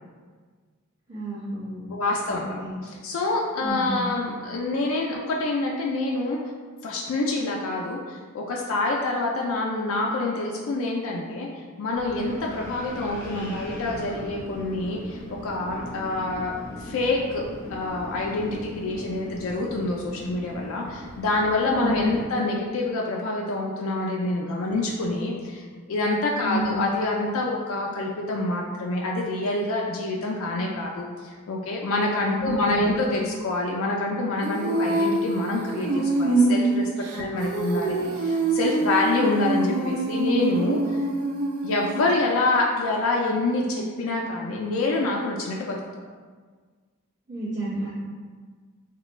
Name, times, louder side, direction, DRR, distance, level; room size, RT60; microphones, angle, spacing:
voice 1, 1.1-1.9 2.3-2.7 3.6-4.0 21.7-22.0 24.7-24.8 26.4-26.8 32.3-32.9 37.1-37.3 37.9-38.1 47.3-47.9, right 1 dB, 50° right, -14 dB, 0.9 m, -31 dB
voice 2, 1.9-2.6 2.8-6.4 6.8-11.5 11.8-17.4 17.7-41.0 41.6-45.8, left 2 dB, 65° left, -2 dB, 0.3 m, -26 dB
Wind, 12.0-22.2, left 1 dB, 10° left, 0.5 m, -40 dB
Female singing, 34.4-42.1, right 2 dB, 80° right, 0.4 m, -25 dB
3.1 x 2.2 x 3.0 m, 1.6 s
head